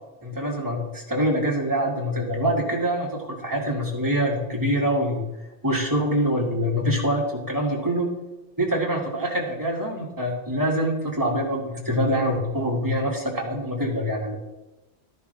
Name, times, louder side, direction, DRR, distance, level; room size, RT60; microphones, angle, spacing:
voice 1, 0.2-5.2 5.6-8.1 8.6-14.4, equal, 15° right, -3 dB, 2.2 m, -25 dB
13.0 x 10.5 x 3.4 m, 1.0 s
omnidirectional pair, 1.3 m